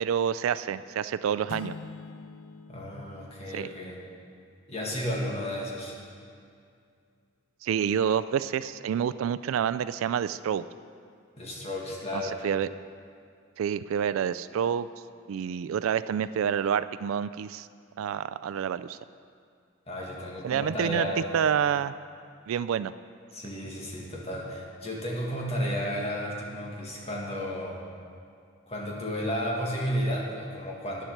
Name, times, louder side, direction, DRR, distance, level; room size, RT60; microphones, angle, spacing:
voice 1, 0.0-1.7 3.5-3.7 7.6-10.6 12.1-12.7 13.6-14.9 15.3-17.7 18.0-19.0 20.4-21.1 21.3-21.9 22.5-22.9, right 8 dB, 80° right, 15 dB, 0.3 m, -28 dB
sound 1, 1.5-4.3, left 4 dB, 70° left, 0.3 m, -45 dB
voice 2, 2.7-4.0 4.7-6.0 11.4-12.5 19.9-21.3 23.3-27.8 28.7-31.0, equal, 30° left, -3 dB, 1.8 m, -33 dB
10.5 x 7.4 x 6.5 m, 2.3 s
head